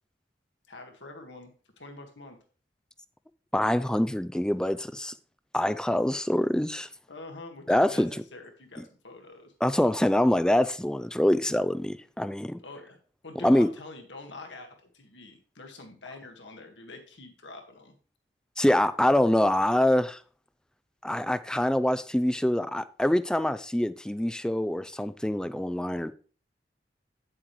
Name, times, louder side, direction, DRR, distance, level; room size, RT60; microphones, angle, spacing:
voice 1, 0.7-1.5 1.8-2.4 7.1-9.5 12.6-13.0 13.2-17.9, left 2 dB, 90° left, 1.7 m, -45 dB
voice 2, 3.5-5.1 5.5-6.9 7.7-8.1 8.8-8.9 9.6-12.6 13.4-13.7 18.6-20.2 21.0-26.1, left 1 dB, 5° left, 0.3 m, -25 dB
9.4 x 7.5 x 3.1 m
head